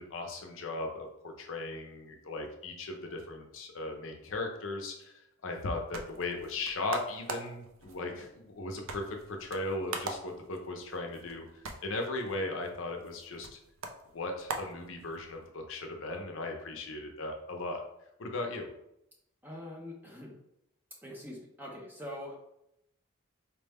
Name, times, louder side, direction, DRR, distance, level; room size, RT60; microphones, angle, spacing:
voice 1, 0.0-13.6 14.1-17.8 18.2-18.7, left 2 dB, 60° left, 2 dB, 0.6 m, -37 dB
sound 1, 5.5-15.5, right 3 dB, 65° right, 0.5 m, -44 dB
voice 2, 19.4-20.3 21.0-22.3, left 1 dB, 10° right, -1 dB, 0.6 m, -43 dB
4.3 x 2.1 x 3.4 m, 0.80 s
head